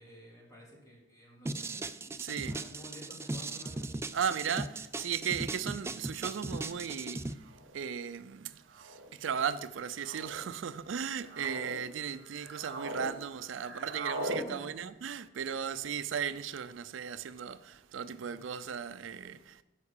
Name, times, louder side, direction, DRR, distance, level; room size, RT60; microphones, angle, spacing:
voice 1, 0.0-3.9 13.6-13.9 14.3-14.7 18.2-18.4, equal, 20° left, 3.1 m, -52 dB
sound 1, 1.5-7.3, right 2 dB, 15° right, 0.3 m, -38 dB
voice 2, 2.2-2.5 4.1-19.6, right 7 dB, 80° right, 0.4 m, -36 dB
sound 2, 7.5-7.8 8.7-9.1 10.0-10.4 11.0-11.7 12.2-13.1 13.3-14.4, right 1 dB, 60° right, 1.4 m, -40 dB
11.0 x 4.8 x 7.2 m
head